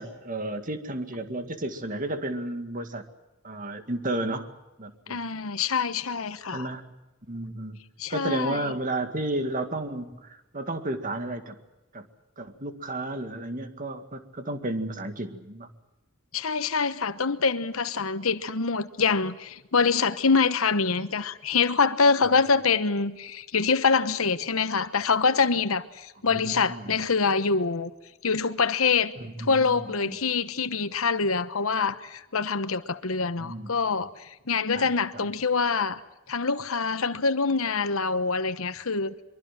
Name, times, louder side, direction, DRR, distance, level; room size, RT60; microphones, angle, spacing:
voice 1, 0.0-3.0 3.4-4.5 4.8-5.2 6.5-6.9 7.3-7.8 8.1-11.6 11.9-12.1 12.4-15.7 26.2-27.0 29.2-30.2 33.4-33.7 34.8-34.9 35.1-35.3, right 1 dB, 40° right, 2.1 m, -32 dB
voice 2, 5.1-6.7 8.0-8.6 16.3-27.9 28.2-36.0 36.3-39.1, left 5 dB, 90° left, 1.1 m, -25 dB
24.0 x 23.5 x 7.6 m
head